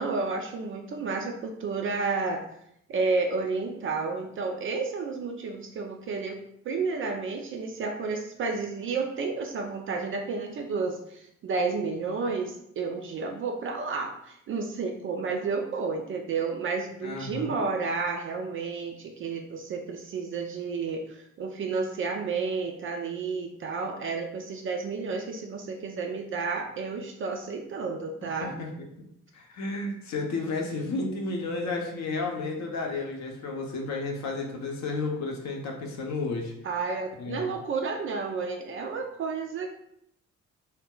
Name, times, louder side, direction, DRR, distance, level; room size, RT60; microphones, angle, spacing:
voice 1, 0.0-2.4 2.9-28.5 36.6-39.7, right 4 dB, 35° right, 3 dB, 0.4 m, -31 dB
voice 2, 17.0-17.5 28.4-28.7 29.3-36.5 37.2-37.6, left 3 dB, 45° left, 1 dB, 0.7 m, -32 dB
2.1 x 2.0 x 3.6 m, 0.73 s
figure-of-eight pair, 45°, 38 cm